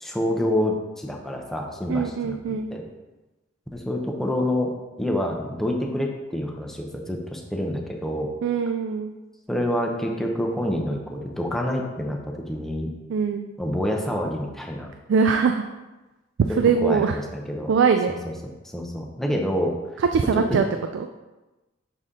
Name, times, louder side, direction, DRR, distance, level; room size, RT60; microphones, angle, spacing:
voice 1, 0.0-2.8 3.7-4.7 5.0-8.3 9.5-12.9 13.6-14.9 16.8-17.7 18.1-18.2 18.4-19.8 20.5-20.6, left 1 dB, ahead, 0 dB, 0.6 m, -27 dB
voice 2, 1.9-2.7 8.4-9.1 13.1-13.5 15.1-15.6 16.6-17.2 17.7-18.1 20.1-20.6 20.9-21.1, right 5 dB, 65° right, 6 dB, 0.3 m, -22 dB
6.5 x 4.2 x 3.7 m, 1.1 s
head